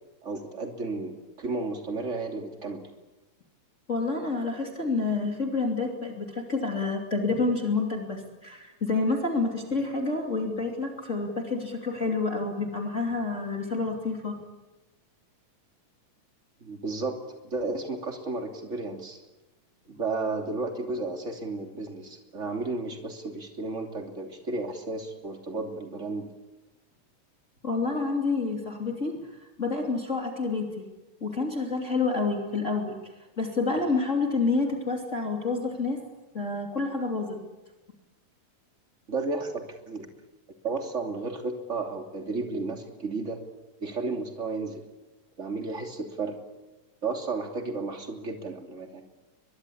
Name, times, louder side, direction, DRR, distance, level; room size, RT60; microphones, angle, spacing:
voice 1, 0.2-2.9 16.6-17.2 17.4-19.2 19.9-26.3 39.1-40.1 40.6-43.4 43.8-44.8 45.4-46.4 47.0-49.0, right 3 dB, 25° right, 3 dB, 3.0 m, -33 dB
voice 2, 3.9-14.4 27.6-29.2 29.6-30.7 31.2-32.9 33.4-36.0 36.3-37.4, left 3 dB, 25° left, 1 dB, 3.1 m, -28 dB
23.0 x 23.0 x 8.6 m, 1.1 s
omnidirectional pair, 3.3 m